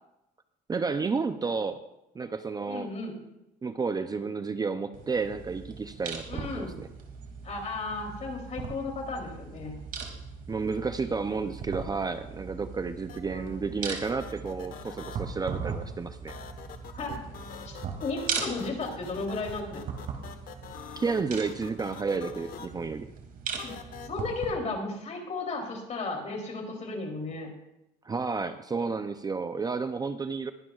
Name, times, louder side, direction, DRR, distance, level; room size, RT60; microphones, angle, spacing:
voice 1, 0.7-1.8 2.1-2.9 3.6-6.9 10.5-16.4 21.0-23.1 28.0-30.5, right 4 dB, 25° right, 9 dB, 0.5 m, -31 dB
voice 2, 2.7-3.2 6.3-6.8 7.4-9.7 13.2-13.6 16.9-17.2 17.6-19.8 23.6-23.7 24.0-27.5, left 3 dB, 45° left, 1 dB, 3.2 m, -34 dB
sound 1, 4.9-24.5, right 5 dB, 55° right, 2.5 m, -39 dB
sound 2, 13.1-13.2 14.0-15.2 16.3-22.7 23.6-24.1, left 8 dB, 60° left, 1.3 m, -44 dB
21.5 x 10.5 x 2.4 m, 0.91 s
cardioid pair, 110°, 17 cm